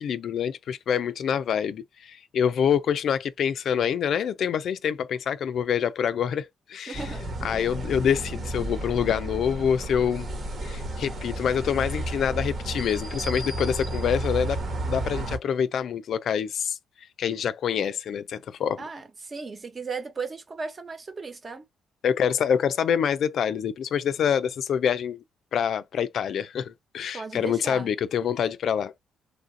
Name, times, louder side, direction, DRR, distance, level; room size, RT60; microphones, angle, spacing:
voice 1, 0.0-7.0 7.4-10.3 10.6-16.8 17.2-18.8 22.0-25.2 25.5-28.9, left 8 dB, 65° left, 0.4 m, -26 dB
voice 2, 6.9-7.3 18.8-21.6 27.1-27.9, right 4 dB, 35° right, 1.1 m, -36 dB
sound 1, 6.9-15.4, right 1 dB, 50° right, 1.3 m, -32 dB
3.1 x 2.5 x 2.6 m
cardioid pair, 90°, 0 cm